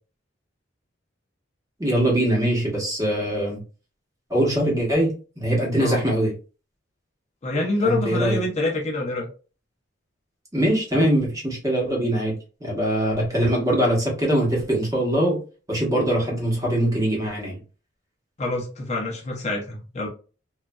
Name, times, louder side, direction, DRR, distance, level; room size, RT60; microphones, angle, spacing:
voice 1, 1.8-3.6 4.3-6.3 7.8-8.4 10.5-12.3 12.6-15.4 15.7-17.6, right 1 dB, 20° right, -3 dB, 1.0 m, -22 dB
voice 2, 7.4-9.3 18.4-20.1, left 2 dB, 35° left, 0 dB, 0.6 m, -26 dB
3.0 x 2.3 x 2.2 m, 0.35 s
head